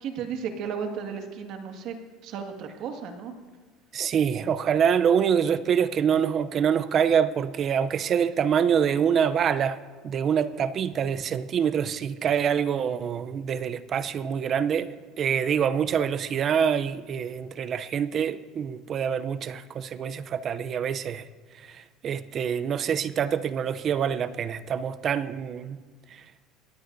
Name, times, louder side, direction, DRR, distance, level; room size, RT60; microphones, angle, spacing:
voice 1, 0.0-2.0 2.2-3.4, right 6 dB, 60° right, 1.8 m, -34 dB
voice 2, 3.9-9.8 10.0-14.9 15.2-21.2 22.0-25.8, right 8 dB, 40° right, 0.6 m, -25 dB
22.5 x 17.0 x 2.7 m
supercardioid pair, 110°, 0 cm